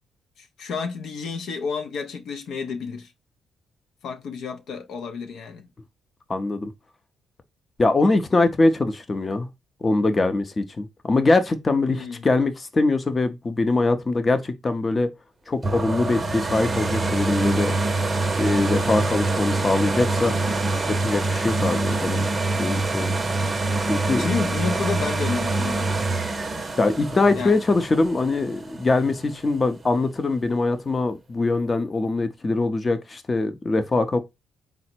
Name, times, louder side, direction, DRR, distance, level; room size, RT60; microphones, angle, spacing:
voice 1, 0.4-3.1 4.0-5.7 11.9-12.3 24.2-25.9 27.4-27.6, left 5 dB, 70° left, 0.5 m, -30 dB
voice 2, 6.3-6.7 7.8-9.5 9.8-15.1 15.5-17.8 18.4-20.3 20.9-23.2 23.8-24.3 26.8-34.2, left 3 dB, 30° left, 0.6 m, -22 dB
sound 1, 15.6-29.3 29.8-29.9, right 2 dB, 25° right, 0.6 m, -25 dB
4.0 x 2.0 x 4.3 m
cardioid pair, 90°, 0 cm